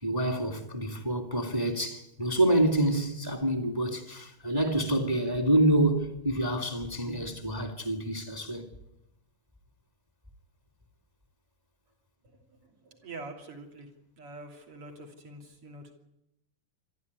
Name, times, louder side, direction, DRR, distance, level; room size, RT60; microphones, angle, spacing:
voice 1, 0.0-8.7, right 1 dB, 10° right, 1.9 m, -27 dB
voice 2, 12.2-13.9 14.2-15.9, right 2 dB, 45° right, 3.7 m, -45 dB
27.0 x 13.0 x 9.6 m
omnidirectional pair, 3.7 m